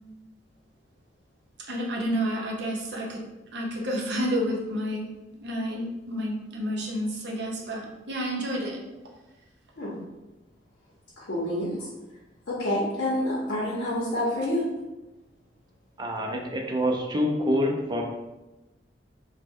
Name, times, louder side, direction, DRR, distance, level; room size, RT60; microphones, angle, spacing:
voice 1, 1.7-3.2 3.5-5.1 5.4-8.8, equal, 70° right, 0 dB, 0.6 m, -30 dB
voice 2, 11.2-11.7 12.5-14.6, left 1 dB, 75° left, -6 dB, 0.7 m, -28 dB
voice 3, 16.0-18.0, equal, 25° right, 2 dB, 0.4 m, -26 dB
3.0 x 2.1 x 3.5 m, 1.1 s
head